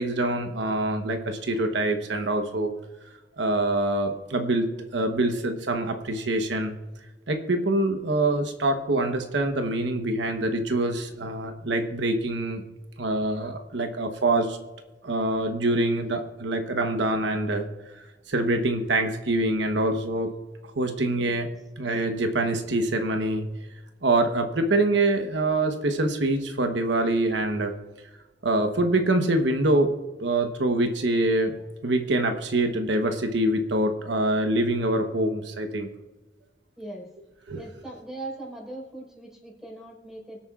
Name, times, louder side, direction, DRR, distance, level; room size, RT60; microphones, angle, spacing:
voice 1, 0.0-2.7 3.4-6.7 7.3-12.6 13.0-14.6 15.0-17.7 18.3-20.3 20.8-21.5 21.8-23.4 24.0-27.7 28.4-29.9 30.2-31.5 31.8-35.9 37.5-37.6, right 2 dB, 85° right, 5 dB, 1.1 m, -25 dB
voice 2, 36.8-37.1 37.5-40.4, right 2 dB, 5° right, -3 dB, 4.8 m, -40 dB
25.0 x 8.6 x 2.5 m, 1.1 s
head